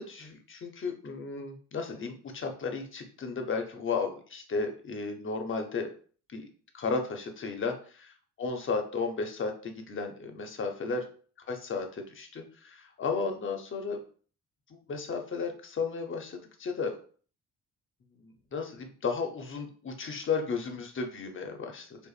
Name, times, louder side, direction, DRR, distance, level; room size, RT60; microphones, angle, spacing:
voice 1, 0.0-5.9 6.3-6.5 6.7-7.7 8.4-11.0 11.5-14.0 14.7-17.0 18.1-22.1, left 4 dB, 40° left, 4 dB, 0.8 m, -34 dB
4.9 x 2.5 x 2.4 m, 0.43 s
cardioid pair, 90°, 30 cm